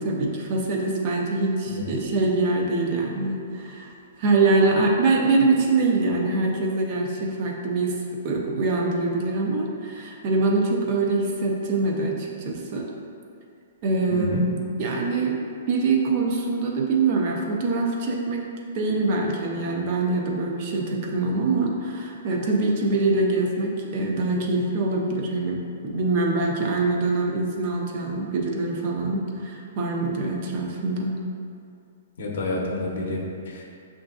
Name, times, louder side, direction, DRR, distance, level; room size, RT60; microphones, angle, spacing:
voice 1, 0.0-3.9 4.2-8.0 8.2-12.9 13.8-14.5 14.8-15.4 15.7-18.4 18.7-31.2, right 3 dB, 35° right, 0 dB, 0.5 m, -24 dB
voice 2, 14.1-14.4 32.2-33.6, left 2 dB, 60° left, -1 dB, 0.6 m, -29 dB
6.7 x 2.6 x 2.3 m, 2.4 s
hypercardioid pair, 170°, 0 cm